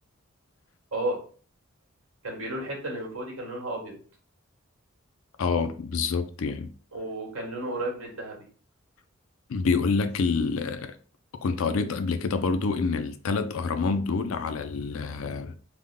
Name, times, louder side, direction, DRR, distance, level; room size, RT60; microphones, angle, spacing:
voice 1, 2.2-4.0 6.9-8.4, right 1 dB, 75° right, 1.5 m, -32 dB
voice 2, 5.4-6.7 9.5-11.0 11.4-15.6, left 4 dB, 70° left, 0.4 m, -27 dB
3.5 x 2.1 x 3.6 m
head